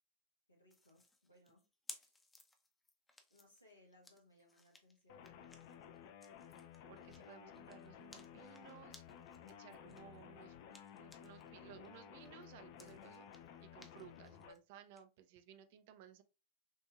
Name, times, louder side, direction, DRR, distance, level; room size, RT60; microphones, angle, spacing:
voice 1, 0.5-1.7 1.9-2.1 3.3-5.3, left 1 dB, 85° left, 1.5 m, -67 dB
sound 1, 0.7-11.5 11.8-15.0, left 2 dB, 10° left, 0.7 m, -61 dB
sound 2, 5.1-14.5, left 8 dB, 50° left, 0.4 m, -55 dB
voice 2, 6.9-9.0 9.5-16.2, right 9 dB, 50° right, 0.6 m, -59 dB
6.1 x 2.6 x 2.4 m
figure-of-eight pair, 90°, 0 cm